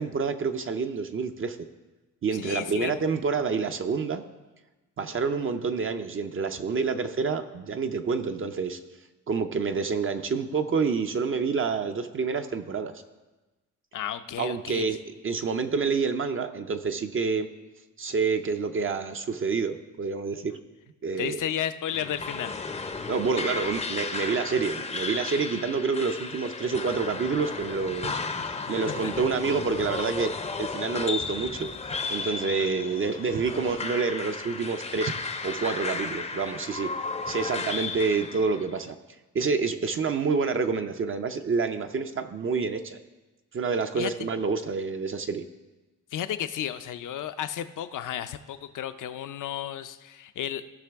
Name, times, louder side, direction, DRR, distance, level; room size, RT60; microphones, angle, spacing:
voice 1, 0.0-1.6 2.2-4.2 5.0-8.8 9.3-12.9 14.4-17.5 18.0-20.5 21.0-21.4 23.1-28.2 28.7-30.3 30.6-31.7 32.1-35.1 35.4-36.9 37.3-39.0 39.3-43.0 43.5-45.4, right 5 dB, 40° right, 7 dB, 0.5 m, -28 dB
voice 2, 2.3-3.0 13.9-14.8 21.2-22.5 28.9-29.3 32.6-32.9 44.0-44.3 46.1-50.7, left 10 dB, 65° left, 12 dB, 0.6 m, -33 dB
sound 1, 21.9-38.7, left 4 dB, 20° left, 0.5 m, -34 dB
15.5 x 5.8 x 3.5 m, 1.2 s
cardioid pair, 110°, 33 cm